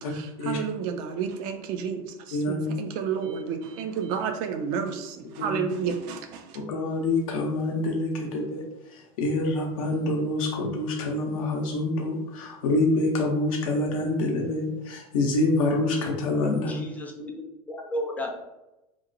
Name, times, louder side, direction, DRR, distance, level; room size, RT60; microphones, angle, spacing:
voice 1, 0.0-6.6, right 6 dB, 45° right, 5 dB, 0.4 m, -31 dB
voice 2, 2.3-2.7 5.4-5.6 6.5-8.6 9.2-16.8, left 2 dB, 60° left, 1 dB, 0.7 m, -26 dB
voice 3, 16.7-17.3 17.7-18.3, left 1 dB, 10° left, 1 dB, 0.5 m, -33 dB
2.9 x 2.1 x 2.6 m, 0.94 s
figure-of-eight pair, 80°, 19 cm